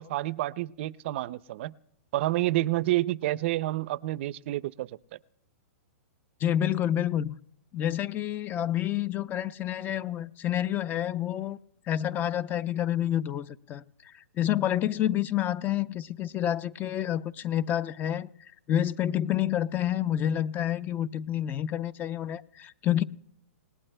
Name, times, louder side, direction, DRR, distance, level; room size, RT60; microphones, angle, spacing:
voice 1, 0.0-1.7 2.1-4.9, right 16 dB, 50° right, 0.5 m, -29 dB
voice 2, 6.4-7.4 7.7-11.6 11.9-23.0, left 11 dB, 25° left, 0.5 m, -29 dB
29.0 x 18.5 x 2.2 m
hypercardioid pair, 140°, 8 cm